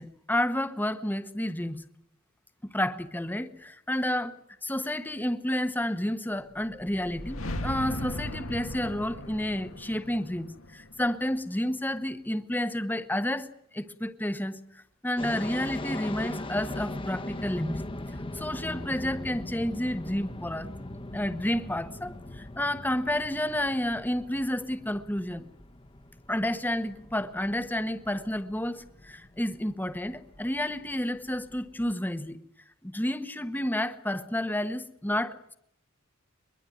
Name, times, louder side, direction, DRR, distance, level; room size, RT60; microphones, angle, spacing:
voice 1, 0.0-1.9 2.7-4.4 4.6-13.5 13.7-17.9 18.3-20.7 21.1-25.5 26.3-32.4 32.8-35.6, left 1 dB, 10° left, 10 dB, 1.2 m, -30 dB
sound 1, 6.6-11.8, left 1 dB, 85° left, 2.4 m, -38 dB
sound 2, 15.2-31.9, left 1 dB, 25° left, 1.2 m, -40 dB
23.5 x 22.5 x 9.2 m, 0.72 s
head